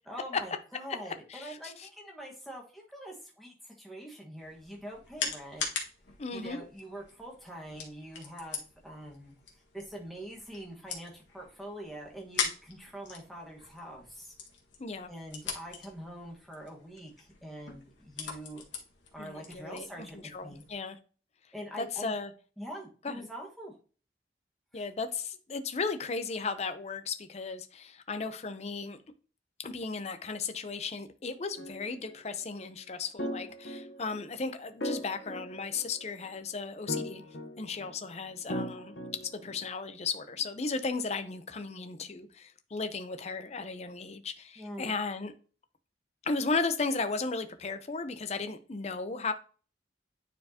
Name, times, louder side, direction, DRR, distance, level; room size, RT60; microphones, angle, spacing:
voice 1, 0.1-5.6 6.3-9.3 9.7-14.3 15.1-18.6 19.1-20.6 21.5-22.1 22.6-23.7 24.7-24.8 44.6-45.0, equal, ahead, -2 dB, 1.4 m, -44 dB
voice 2, 1.0-1.9 6.2-6.6 14.8-15.1 19.2-21.0 21.8-22.3 23.0-23.3 24.7-29.0 29.6-37.2 37.6-38.9 39.4-45.3 46.2-49.3, left 4 dB, 35° left, 9 dB, 0.5 m, -35 dB
sound 1, 4.4-20.8, left 6 dB, 90° left, 1.6 m, -42 dB
sound 2, 31.5-32.1 33.2-34.3 34.8-36.2 36.9-37.9 38.5-39.6, left 1 dB, 65° left, 0.9 m, -38 dB
9.4 x 4.4 x 2.8 m, 0.38 s
head